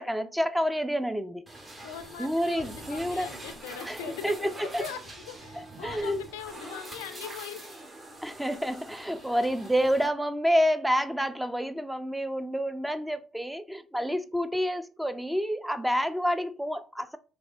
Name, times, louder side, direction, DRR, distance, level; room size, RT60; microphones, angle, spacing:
voice 1, 0.0-1.4 2.2-3.3 3.9-4.0 4.2-4.8 5.8-6.2 8.2-17.2, equal, 5° right, 0.4 m, -28 dB
sound 1, 1.5-10.1, right 2 dB, 25° right, 0.9 m, -44 dB
voice 2, 1.7-4.3 4.8-7.8 9.3-9.5 14.0-14.2, left 8 dB, 80° left, 0.3 m, -41 dB
3.2 x 2.6 x 2.5 m
hypercardioid pair, 55°, 0 cm